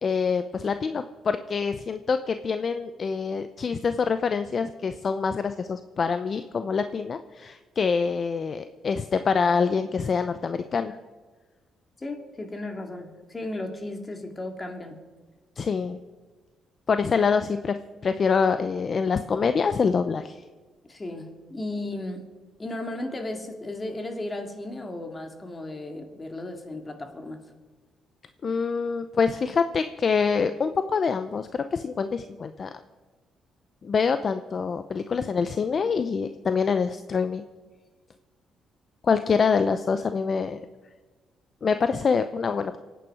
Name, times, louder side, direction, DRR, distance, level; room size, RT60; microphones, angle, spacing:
voice 1, 0.0-11.0 15.6-16.0 16.9-17.8 18.0-20.4 28.4-32.7 33.8-37.4 39.0-40.6 41.6-42.8, left 5 dB, 45° left, 10 dB, 0.6 m, -25 dB
voice 2, 12.0-15.0 20.9-22.3 22.6-27.4, left 2 dB, 25° left, 4 dB, 2.2 m, -35 dB
24.0 x 9.2 x 4.8 m, 1.4 s
cardioid pair, 90°, 0 cm